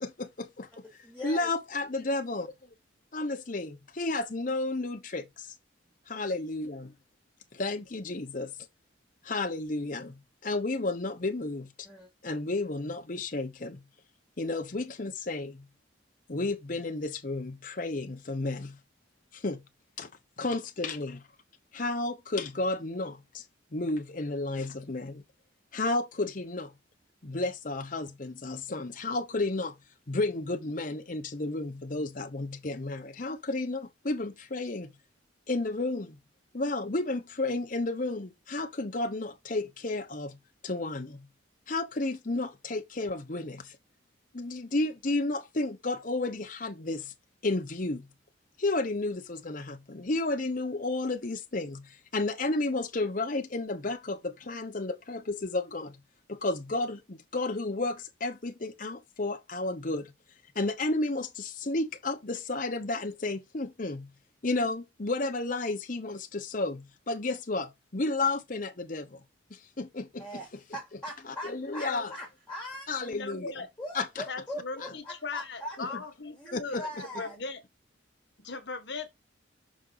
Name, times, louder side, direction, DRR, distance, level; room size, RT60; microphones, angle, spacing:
voice 1, 0.0-0.8 1.2-2.7 3.1-5.5 6.1-6.9 7.5-8.5 9.2-11.9 12.2-13.8 14.4-15.6 16.3-18.8 19.3-19.6 20.0-20.1 20.4-21.2 21.7-23.4 23.7-25.2 25.7-26.7 27.2-29.8 30.1-34.9 35.5-36.2 36.5-40.4 40.6-41.3 41.7-43.8 44.3-47.1 47.4-48.1 48.6-56.0 56.3-60.1 60.5-64.1 64.4-69.2 69.5-70.3 71.2-72.1 72.9-73.5 73.9-74.2 74.8-74.9 75.8-75.9 76.5-76.8, left 2 dB, 45° left, 0.9 m, -32 dB
voice 2, 1.0-1.5 11.8-12.1 70.2-73.1 73.8-75.8 76.4-77.3, equal, 5° left, 2.7 m, -41 dB
voice 3, 73.0-73.7 74.3-76.9 77.2-77.6 78.4-79.1, left 4 dB, 60° left, 1.5 m, -38 dB
6.2 x 4.9 x 4.0 m
head